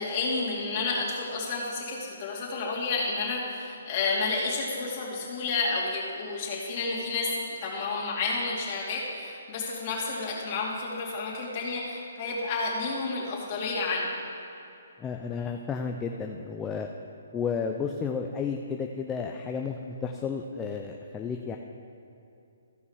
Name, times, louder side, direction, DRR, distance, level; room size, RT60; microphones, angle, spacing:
voice 1, 0.0-14.1, left 3 dB, 35° left, -5 dB, 2.7 m, -30 dB
voice 2, 15.0-16.9 17.3-21.6, left 6 dB, 15° left, 2 dB, 0.5 m, -32 dB
15.0 x 5.4 x 4.8 m, 2.7 s
hypercardioid pair, 145°, 0 cm